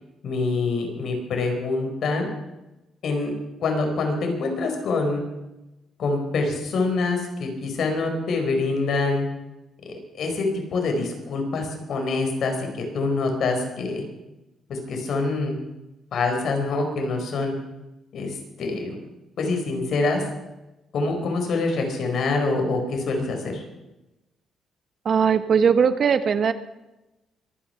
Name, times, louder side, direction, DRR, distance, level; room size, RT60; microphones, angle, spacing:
voice 1, 0.2-2.3 3.0-3.3 3.6-5.2 6.0-9.2 9.8-10.5 10.7-14.0 14.7-15.5 16.1-17.5 18.1-18.9 19.4-20.2 20.9-23.6, left 3 dB, 60° left, 3 dB, 4.7 m, -25 dB
voice 2, 25.0-26.5, right 6 dB, 50° right, 11 dB, 1.1 m, -19 dB
23.5 x 9.9 x 5.8 m, 0.99 s
cardioid pair, 115°, 0 cm